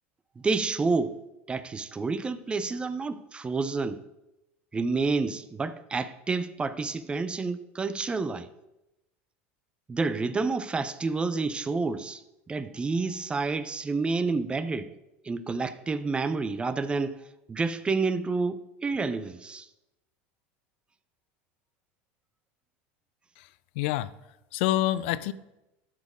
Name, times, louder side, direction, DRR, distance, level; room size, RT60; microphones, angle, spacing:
voice 1, 0.4-1.2 1.5-4.0 4.7-8.5 9.9-12.2 12.5-14.9 15.2-19.7, right 4 dB, 15° right, 0.4 m, -29 dB
voice 2, 23.8-24.1 24.5-25.3, left 14 dB, 75° left, 0.4 m, -27 dB
12.0 x 4.2 x 4.9 m
supercardioid pair, 120°, 6 cm